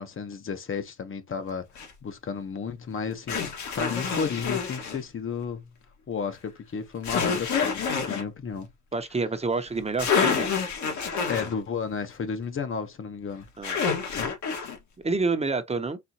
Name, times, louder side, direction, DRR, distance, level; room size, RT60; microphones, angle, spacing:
voice 1, 0.0-1.7 2.0-5.7 6.1-8.7 11.3-13.5, left 6 dB, 45° left, 0.9 m, -33 dB
Female nose blow, 1.7-1.9 3.3-5.0 7.0-8.2 9.7-9.8 10.0-11.5 13.6-14.8, left 6 dB, 70° left, 1.7 m, -27 dB
voice 2, 8.9-10.5 13.6-13.8 15.0-16.0, right 3 dB, 20° right, 0.8 m, -28 dB
4.2 x 3.6 x 2.8 m
cardioid pair, 90°, 30 cm